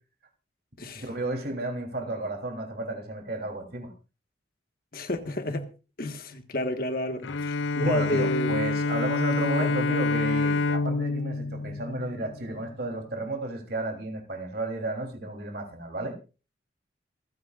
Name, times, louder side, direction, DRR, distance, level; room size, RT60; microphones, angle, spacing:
voice 1, 0.9-3.9 7.8-16.1, right 2 dB, 55° right, 3.3 m, -33 dB
voice 2, 4.9-5.7 6.0-8.6 9.6-9.7, left 1 dB, 50° left, 1.5 m, -30 dB
Bowed string instrument, 7.2-12.6, left 3 dB, 90° left, 0.6 m, -27 dB
27.0 x 9.6 x 2.5 m
head